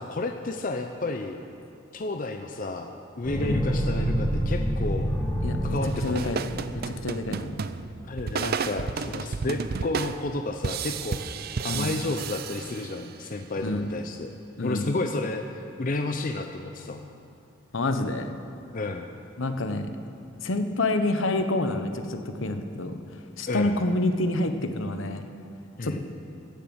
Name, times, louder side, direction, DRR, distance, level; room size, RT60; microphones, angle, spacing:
voice 1, 0.0-1.4 1.9-2.9 3.2-5.1 5.6-6.3 8.1-11.2 11.6-14.3 14.6-15.4 15.8-17.0 18.7-19.1 23.5-23.8 25.8-26.0, left 2 dB, 40° left, 4 dB, 0.6 m, -31 dB
sound 1, 3.2-7.3, equal, 10° left, 1.8 m, -28 dB
voice 2, 5.4-5.8 6.0-6.4 6.8-7.6 11.7-11.9 13.6-13.8 14.6-14.9 17.7-18.4 19.4-19.9 20.4-23.0 23.4-25.2 25.8-26.1, left 2 dB, 70° left, 7 dB, 0.9 m, -28 dB
sound 2, 5.8-13.2, right 5 dB, 50° right, 0.4 m, -33 dB
15.0 x 7.1 x 7.9 m, 2.5 s
head